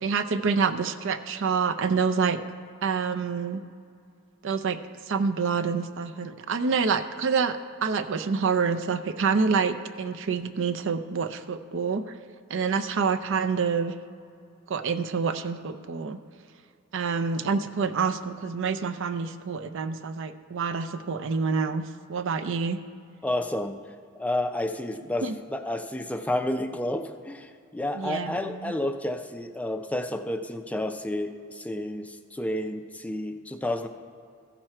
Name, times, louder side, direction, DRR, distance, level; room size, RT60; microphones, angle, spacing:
voice 1, 0.0-2.4 2.8-3.6 4.4-4.8 5.1-12.0 12.5-13.9 14.7-16.2 16.9-22.8 25.2-25.3 27.9-28.7, right 5 dB, 60° right, 9 dB, 0.5 m, -27 dB
voice 2, 23.2-23.8 24.1-33.9, left 1 dB, 5° left, 7 dB, 0.4 m, -30 dB
14.5 x 6.0 x 4.4 m, 2.4 s
head